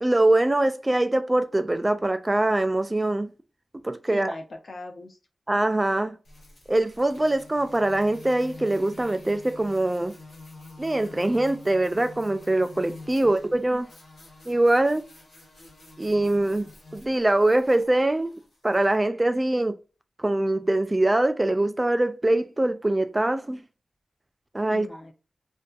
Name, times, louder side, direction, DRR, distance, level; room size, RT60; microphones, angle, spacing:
voice 1, 0.0-3.3 3.8-4.3 5.5-6.2 6.7-10.1 10.8-13.9 14.5-15.1 16.0-16.7 16.9-18.3 18.6-19.8 20.2-23.6 24.5-24.9, right 1 dB, 25° right, 0.3 m, -23 dB
voice 2, 4.1-5.2 13.2-13.6 24.7-25.1, left 2 dB, 60° left, 0.6 m, -41 dB
sound 1, 6.2-19.0, left 2 dB, 80° left, 1.4 m, -47 dB
2.6 x 2.2 x 2.3 m
wide cardioid pair, 70°, 0 cm